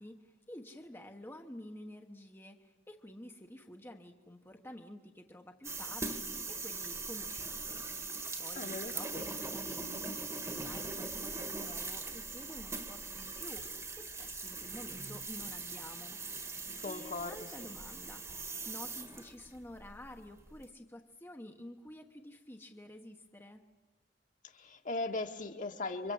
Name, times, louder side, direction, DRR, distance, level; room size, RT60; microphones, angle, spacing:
voice 1, 0.0-7.8 8.4-13.6 13.9-16.2 16.8-18.2 18.6-23.6, left 1 dB, 15° left, 3 dB, 1.2 m, -50 dB
sound 1, 5.6-20.6, right 3 dB, 15° right, 1.7 m, -41 dB
voice 2, 8.5-9.3 16.8-17.7 24.5-26.1, left 2 dB, 45° left, 4 dB, 1.9 m, -39 dB
29.5 x 24.5 x 8.0 m, 1.2 s
head